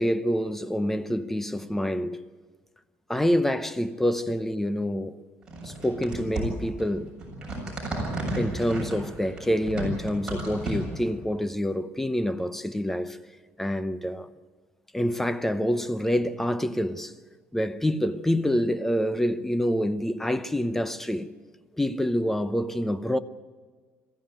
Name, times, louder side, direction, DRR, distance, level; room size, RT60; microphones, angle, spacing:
voice 1, 0.0-2.2 3.1-5.2 5.6-7.1 8.3-13.2 13.6-14.3 14.9-17.1 17.5-21.3 21.8-23.2, equal, 5° left, 0.7 m, -27 dB
sound 1, 5.4-11.1, right 2 dB, 15° right, 7.4 m, -33 dB
22.5 x 15.0 x 9.1 m
cardioid pair, 145°, 5 cm